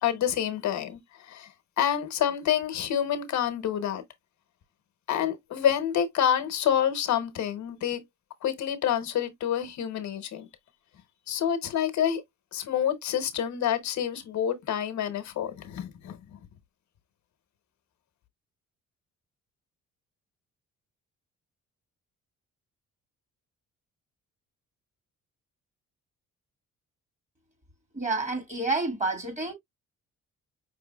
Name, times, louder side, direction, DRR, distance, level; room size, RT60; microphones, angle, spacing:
voice 1, 0.0-1.5 1.8-4.0 5.1-8.0 8.4-10.5 11.3-12.2 12.5-16.2, left 9 dB, 70° left, 0.9 m, -28 dB
voice 2, 27.9-29.5, right 3 dB, 25° right, 2.4 m, -29 dB
5.6 x 3.2 x 2.3 m
cardioid pair, 90°, 30 cm